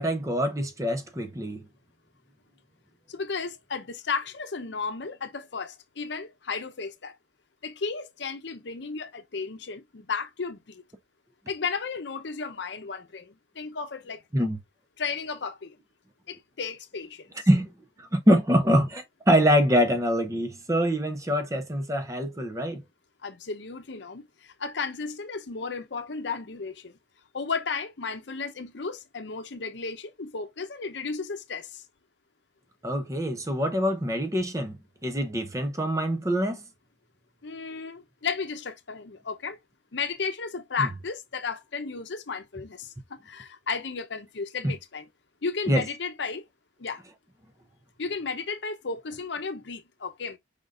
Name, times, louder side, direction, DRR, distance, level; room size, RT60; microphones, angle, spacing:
voice 1, 0.0-1.6 14.3-14.6 17.5-17.7 18.0-22.8 32.8-36.6 40.8-40.9 44.6-44.7 45.7-45.8, equal, 15° right, 0.7 m, -24 dB
voice 2, 3.1-7.1 7.6-10.8 11.5-14.5 15.0-15.8 16.3-17.5 23.2-27.0 27.3-31.8 37.4-39.6 39.9-45.1 45.4-46.4 46.8-47.0 48.0-50.4, left 5 dB, 65° left, 0.7 m, -34 dB
5.1 x 3.9 x 2.4 m
head